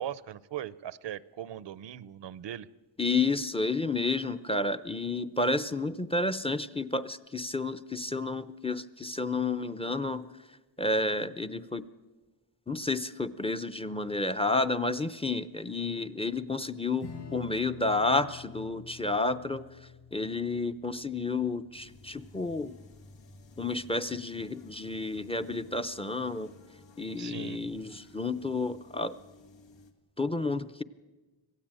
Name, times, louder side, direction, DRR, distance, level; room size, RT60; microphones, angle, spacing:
voice 1, 0.0-2.7 27.2-27.6, right 11 dB, 70° right, 18 dB, 0.7 m, -39 dB
voice 2, 3.0-10.3 10.8-11.8 12.7-19.6 20.1-22.7 23.6-26.5 27.0-29.1 30.2-30.8, left 3 dB, 15° left, 9 dB, 0.7 m, -31 dB
Strum, 17.0-23.9, left 5 dB, 60° left, 6.2 m, -49 dB
sound 1, 21.7-29.9, left 2 dB, 85° left, 2.3 m, -55 dB
26.0 x 16.5 x 9.0 m, 1.3 s
wide cardioid pair, 140°, 44 cm